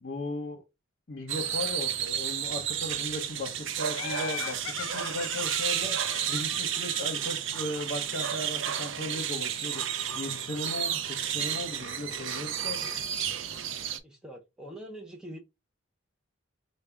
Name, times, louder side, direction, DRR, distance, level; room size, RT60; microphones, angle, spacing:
voice 1, 0.0-0.6 1.1-9.8 10.1-12.8, left 1 dB, 45° left, 0.8 m, -37 dB
sound 1, 1.3-14.0, right 9 dB, 60° right, 0.5 m, -32 dB
Laughter, 3.9-7.6, left 8 dB, 80° left, 0.5 m, -40 dB
voice 2, 14.0-15.4, right 1 dB, 5° right, 0.5 m, -44 dB
4.7 x 2.2 x 3.3 m
head